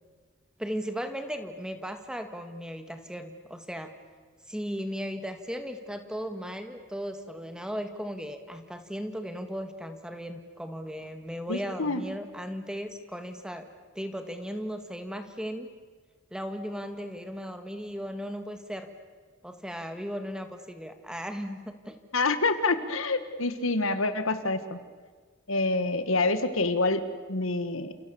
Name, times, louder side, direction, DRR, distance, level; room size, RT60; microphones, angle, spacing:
voice 1, 0.6-3.9 4.5-13.7 14.0-15.7 16.3-18.9 19.4-22.0, equal, 5° right, 7 dB, 1.8 m, -36 dB
voice 2, 11.5-12.0 22.1-24.8 25.5-27.0 27.3-27.9, left 3 dB, 75° left, 11 dB, 1.7 m, -27 dB
29.5 x 28.5 x 7.1 m, 1.5 s
head